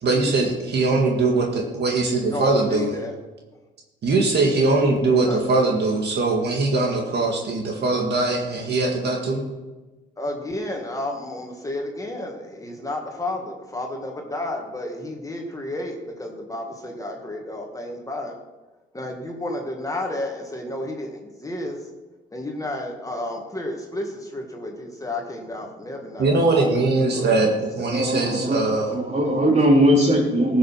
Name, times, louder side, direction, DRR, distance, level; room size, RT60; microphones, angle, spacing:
voice 1, 0.0-3.0 4.0-9.4 26.2-28.9, right 3 dB, 60° right, 0 dB, 2.0 m, -21 dB
voice 2, 2.2-3.1 5.1-5.4 10.2-18.4 18.9-21.8 22.3-27.9, left 1 dB, 15° left, 1 dB, 1.9 m, -32 dB
voice 3, 27.1-27.5 27.9-30.6, equal, 35° right, -3 dB, 4.1 m, -20 dB
14.5 x 6.4 x 5.9 m, 1.2 s
cardioid pair, 90°, 20 cm